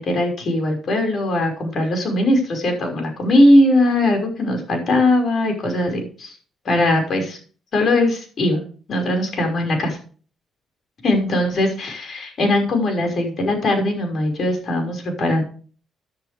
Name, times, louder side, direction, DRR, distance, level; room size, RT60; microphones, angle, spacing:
voice 1, 0.0-6.4 6.6-7.4 7.7-8.6 8.9-10.0 11.0-15.4, left 1 dB, 55° left, 4 dB, 5.8 m, -19 dB
15.0 x 10.5 x 3.5 m, 0.40 s
cardioid pair, 90°, 0 cm